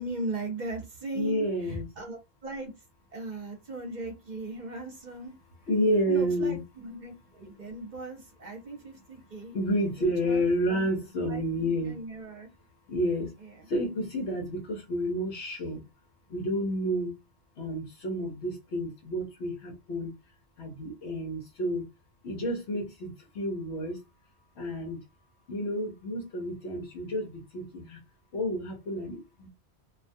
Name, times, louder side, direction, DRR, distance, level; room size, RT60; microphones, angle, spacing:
voice 1, 0.0-2.7 3.1-5.3 6.1-9.6 10.0-10.9 11.3-12.5 13.4-13.7, right 2 dB, 45° right, 2 dB, 0.8 m, -38 dB
voice 2, 1.1-1.8 5.7-6.6 9.5-11.9 12.9-13.3 13.7-15.8 16.3-17.1 17.6-20.1 20.6-21.8 22.2-24.0 24.6-25.0 25.5-28.0 28.3-29.5, equal, 75° left, -1 dB, 1.0 m, -30 dB
2.3 x 2.3 x 2.6 m, 0.23 s
omnidirectional pair, 1.1 m